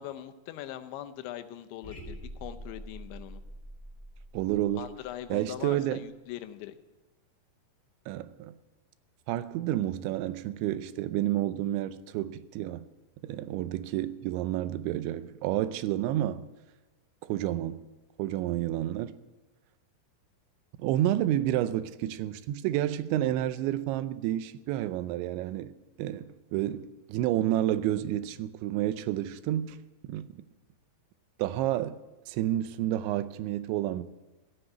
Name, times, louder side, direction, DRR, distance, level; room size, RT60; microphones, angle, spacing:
voice 1, 0.0-3.4 4.8-6.8, left 12 dB, 85° left, 3.1 m, -41 dB
sound 1, 1.8-5.9, equal, 5° left, 2.7 m, -45 dB
voice 2, 4.3-4.9 5.3-6.0 8.1-8.6 9.3-12.8 13.2-16.5 17.2-17.9 18.2-19.2 20.8-25.7 26.0-29.8 30.1-30.3 31.4-32.0 32.3-34.0, right 13 dB, 85° right, 3.0 m, -30 dB
15.5 x 8.1 x 9.1 m
omnidirectional pair, 5.2 m